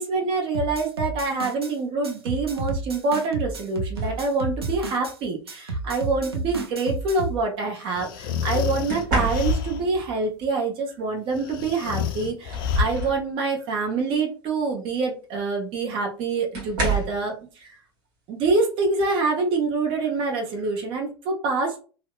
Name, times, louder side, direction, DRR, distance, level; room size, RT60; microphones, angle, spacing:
voice 1, 0.0-17.8 18.3-21.8, right 3 dB, 45° right, 1 dB, 0.8 m, -26 dB
sound 1, 0.5-1.7 2.0-5.2 5.5-7.4, right 3 dB, 85° right, 0.5 m, -31 dB
sound 2, 3.9-4.3 5.6-5.8 8.9-9.9 11.6-11.7 12.2-13.3 13.7-14.0 15.4-15.5 16.5-17.3 19.0-19.2 19.6-20.0, right 3 dB, 60° right, 1.1 m, -29 dB
sound 3, 7.9-10.0 11.3-13.2, left 5 dB, 60° left, 0.4 m, -28 dB
2.7 x 2.1 x 2.3 m, 0.36 s
figure-of-eight pair, 75°, 13 cm